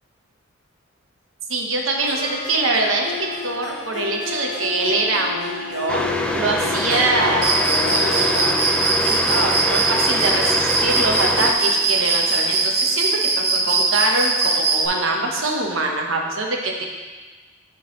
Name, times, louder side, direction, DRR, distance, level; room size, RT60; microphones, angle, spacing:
voice 1, 1.5-3.1 3.4-6.0 6.3-7.4 7.8-8.5 9.1-13.1 13.3-16.8, right 2 dB, 80° right, 1 dB, 0.9 m, -23 dB
Harp, 2.0-15.6, left 5 dB, 55° left, 0.7 m, -33 dB
sound 1, 5.9-11.5, left 1 dB, 5° left, 0.3 m, -24 dB
Cricket, 7.4-14.9, right 3 dB, 50° right, 0.6 m, -21 dB
9.9 x 3.8 x 3.0 m, 1.4 s
head